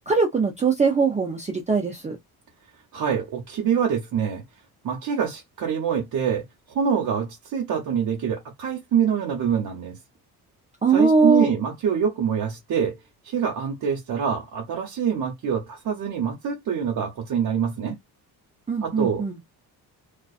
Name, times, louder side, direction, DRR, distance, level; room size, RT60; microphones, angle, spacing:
voice 1, 0.1-2.2 10.8-11.5 18.7-19.4, right 4 dB, 20° right, 0.5 m, -21 dB
voice 2, 2.9-4.4 4.8-9.9 10.9-13.0 13.2-17.9 18.8-19.2, right 7 dB, 60° right, 0.9 m, -25 dB
2.4 x 2.4 x 2.4 m
cardioid pair, 115°, 38 cm